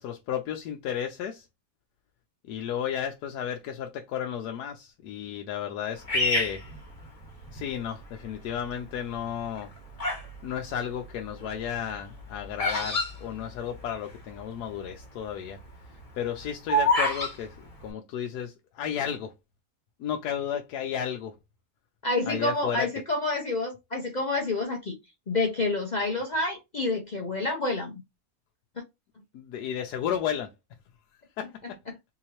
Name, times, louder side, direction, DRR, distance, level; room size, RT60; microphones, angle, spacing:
voice 1, 0.0-1.5 2.5-6.6 7.5-9.7 10.4-15.6 15.9-19.3 20.0-21.3 22.3-22.9 29.3-30.5 31.4-31.5, left 9 dB, 85° left, 1.1 m, -33 dB
Bird vocalization bird call bird song, 6.1-7.6 8.2-8.7 9.4-10.3 10.6-14.1 14.4-14.5 14.6-15.0 15.4-17.3, left 1 dB, 25° left, 1.0 m, -27 dB
voice 2, 22.0-25.0 25.3-28.0 31.9-32.0, left 2 dB, 50° left, 0.5 m, -28 dB
3.8 x 2.8 x 2.9 m
omnidirectional pair, 1.6 m